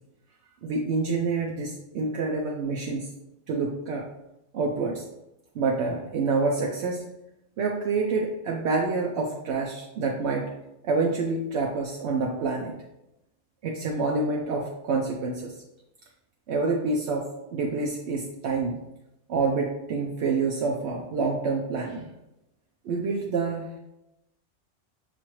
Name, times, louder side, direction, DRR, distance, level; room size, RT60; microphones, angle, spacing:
voice 1, 0.6-3.1 3.5-4.0 4.5-5.1 5.5-7.0 7.6-10.5 10.8-12.7 13.6-15.5 16.5-17.2 17.5-18.8 19.3-22.1 22.8-23.7, right 4 dB, 75° right, -1 dB, 0.8 m, -27 dB
5.6 x 2.5 x 3.0 m, 0.90 s
omnidirectional pair, 1.2 m